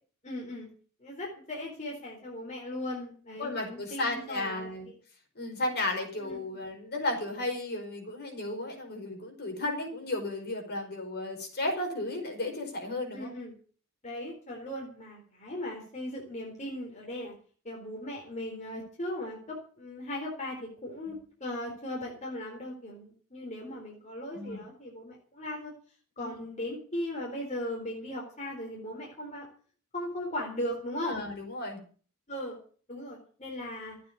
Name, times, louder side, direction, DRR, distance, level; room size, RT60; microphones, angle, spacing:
voice 1, 0.2-0.7 1.0-4.9 6.2-6.4 13.1-13.6 14.0-17.3 17.6-25.7 26.2-29.5 29.9-31.2 32.3-32.6 32.9-34.0, left 1 dB, 35° left, -2 dB, 4.0 m, -38 dB
voice 2, 3.4-4.9 5.3-13.3 21.0-21.2 24.3-24.6 26.2-26.4 31.0-31.8, left 2 dB, 50° left, 2 dB, 5.0 m, -34 dB
13.5 x 9.2 x 8.4 m, 0.43 s
head